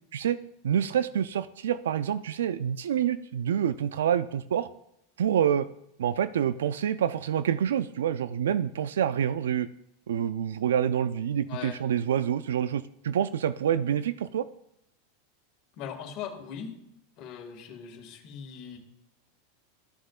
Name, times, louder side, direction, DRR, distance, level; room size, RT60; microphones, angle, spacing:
voice 1, 0.6-4.7 5.2-5.7 6.0-9.7 10.1-14.5, right 9 dB, 85° right, 14 dB, 0.3 m, -27 dB
voice 2, 11.4-11.8 15.7-16.8 17.2-18.8, left 7 dB, 50° left, 1 dB, 1.9 m, -40 dB
14.0 x 6.3 x 2.4 m, 0.79 s
hypercardioid pair, 115°, 0 cm